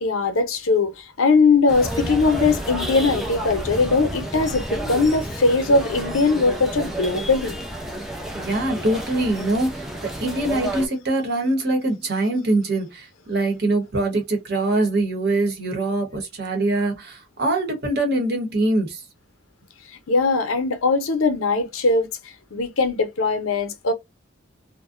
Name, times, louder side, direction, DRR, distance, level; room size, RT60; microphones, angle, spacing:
voice 1, 0.0-7.6 20.1-22.1 22.5-23.9, left 3 dB, 85° left, 0.7 m, -20 dB
sound 1, 1.7-10.9, right 1 dB, ahead, 0.4 m, -30 dB
voice 2, 8.3-9.8 10.2-19.0, right 2 dB, 50° right, 0.9 m, -23 dB
2.5 x 2.1 x 2.4 m
head